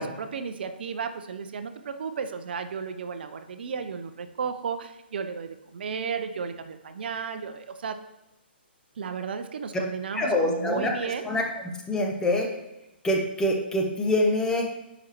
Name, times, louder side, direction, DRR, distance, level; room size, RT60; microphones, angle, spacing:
voice 1, 0.0-8.0 9.0-11.3, right 6 dB, 65° right, 9 dB, 0.5 m, -34 dB
voice 2, 10.1-10.9 11.3-11.4 11.9-12.5 13.0-14.7, left 1 dB, 10° left, 1 dB, 0.8 m, -25 dB
9.3 x 5.0 x 3.0 m, 0.95 s
hypercardioid pair, 135°, 6 cm